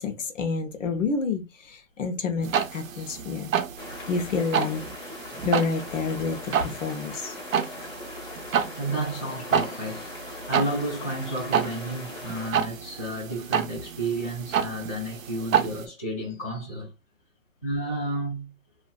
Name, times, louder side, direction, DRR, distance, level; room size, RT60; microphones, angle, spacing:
voice 1, 0.0-3.5 4.1-4.8 5.4-7.3, left 4 dB, 70° left, 0.8 m, -29 dB
sound 1, 2.4-15.8, right 8 dB, 80° right, 0.6 m, -30 dB
sound 2, 3.8-12.5, left 3 dB, 40° left, 0.8 m, -41 dB
voice 2, 8.8-10.1 10.5-16.9 17.6-18.5, right 1 dB, 10° left, 0.4 m, -31 dB
2.4 x 2.4 x 2.3 m
hypercardioid pair, 160°, 39 cm